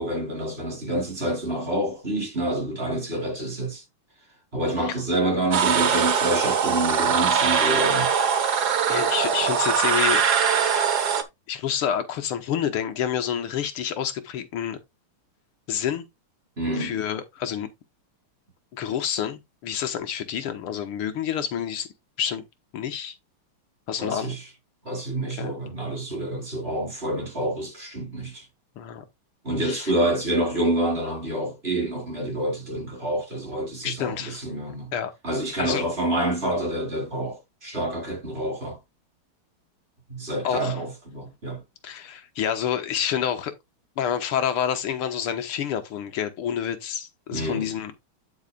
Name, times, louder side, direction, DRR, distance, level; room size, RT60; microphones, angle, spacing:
voice 1, 0.0-3.8 4.5-8.1 16.6-17.0 24.0-24.5 24.8-28.5 29.4-34.9 35.2-38.8 40.1-41.6 47.3-47.7, right 1 dB, 25° right, 4.9 m, -27 dB
sound 1, 5.5-11.2, right 7 dB, 55° right, 1.6 m, -22 dB
voice 2, 8.9-10.2 11.5-14.8 15.7-16.1 16.8-17.7 18.7-21.9 22.2-22.4 22.7-23.1 23.9-24.4 25.3-25.5 28.8-29.0 29.6-29.9 33.8-34.4 34.9-35.1 35.6-35.8 40.4-40.7 41.8-43.5 44.0-47.9, left 9 dB, 90° left, 2.1 m, -28 dB
9.4 x 8.0 x 2.4 m
omnidirectional pair, 2.3 m